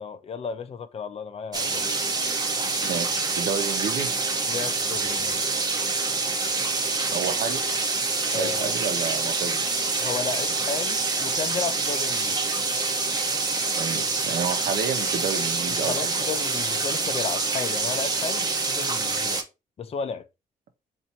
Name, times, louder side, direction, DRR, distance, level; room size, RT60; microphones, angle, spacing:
voice 1, 0.0-1.9 4.5-5.4 8.3-8.8 10.0-12.4 15.7-19.5 19.8-20.3, left 6 dB, 40° left, 0.5 m, -33 dB
sound 1, 1.5-19.4, right 3 dB, 25° right, 0.7 m, -26 dB
voice 2, 2.8-4.1 7.1-7.7 8.3-9.6 13.8-16.0, right 7 dB, 80° right, 0.9 m, -30 dB
4.2 x 2.6 x 4.3 m
wide cardioid pair, 150°, 15 cm